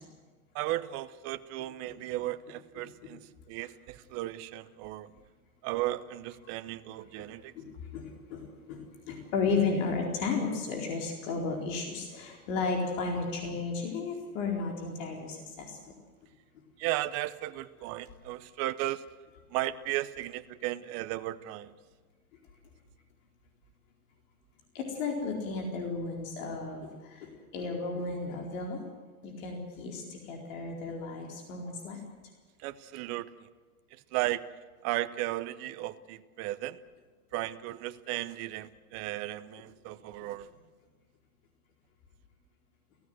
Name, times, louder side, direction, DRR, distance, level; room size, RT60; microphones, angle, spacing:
voice 1, 0.5-5.1 5.6-7.5 16.8-19.0 19.5-21.7 32.6-33.3 34.1-34.5 34.8-36.8 37.3-40.5, right 15 dB, 35° right, 11 dB, 0.8 m, -35 dB
voice 2, 7.6-8.4 8.7-15.8 24.7-28.8 29.2-32.0, left 4 dB, 55° left, 1 dB, 4.4 m, -33 dB
29.0 x 16.0 x 8.0 m, 1.4 s
hypercardioid pair, 125°, 45 cm